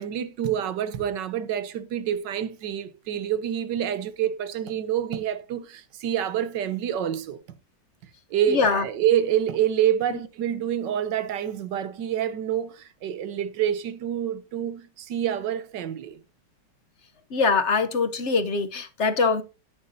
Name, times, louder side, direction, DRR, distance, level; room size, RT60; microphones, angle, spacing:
voice 1, 0.0-7.4 8.3-16.2, right 10 dB, 75° right, 1.5 m, -27 dB
voice 2, 8.5-8.8 17.3-19.4, left 4 dB, 50° left, 1.0 m, -23 dB
13.0 x 9.7 x 2.7 m
omnidirectional pair, 1.9 m